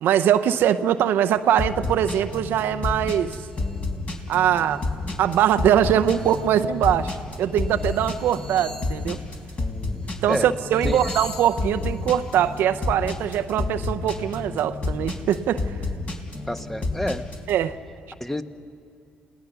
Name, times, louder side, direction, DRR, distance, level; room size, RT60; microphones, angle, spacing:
voice 1, 0.0-3.4 4.3-4.8 5.2-9.2 10.2-15.7 17.5-17.8, right 10 dB, 70° right, 0.7 m, -22 dB
sound 1, 1.6-17.5, left 3 dB, 40° left, 4.2 m, -30 dB
sound 2, 3.2-3.9 4.3-4.9 5.2-6.5 7.0-7.2 7.5-10.2 10.5-12.6, left 2 dB, 25° left, 3.7 m, -44 dB
voice 2, 16.5-17.3 18.2-18.4, left 1 dB, 5° left, 1.2 m, -28 dB
28.5 x 18.0 x 6.9 m
hypercardioid pair, 55°, 4 cm